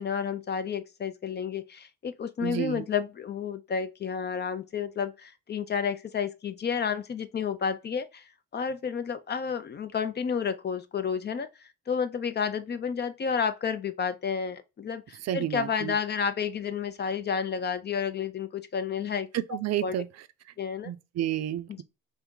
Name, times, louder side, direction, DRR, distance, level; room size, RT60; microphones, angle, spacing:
voice 1, 0.0-19.3 19.8-19.9 20.6-20.9 21.7-21.8, left 6 dB, 35° left, 0.5 m, -31 dB
voice 2, 2.4-2.8 15.2-15.9 19.3-20.1 20.8-21.8, right 12 dB, 60° right, 0.4 m, -30 dB
3.3 x 2.6 x 3.7 m
cardioid pair, 90°, 30 cm